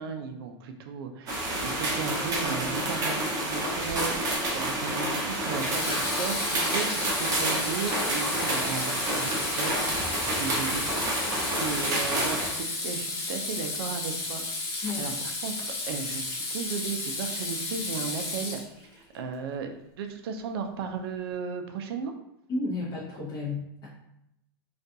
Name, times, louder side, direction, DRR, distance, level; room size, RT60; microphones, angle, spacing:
voice 1, 0.0-11.1 11.6-14.4 14.7-15.1 15.4-18.6 18.9-22.1, right 6 dB, 75° right, 6 dB, 0.4 m, -35 dB
sound 1, 1.3-12.5, right 1 dB, 25° right, 0.6 m, -29 dB
Water tap faucet / Sink (filling or washing), 3.9-4.2 5.5-19.0, left 3 dB, 80° left, 0.9 m, -33 dB
voice 2, 22.5-23.9, left 3 dB, 30° left, -7 dB, 0.6 m, -32 dB
2.4 x 2.2 x 2.6 m, 0.81 s
supercardioid pair, 145°, 13 cm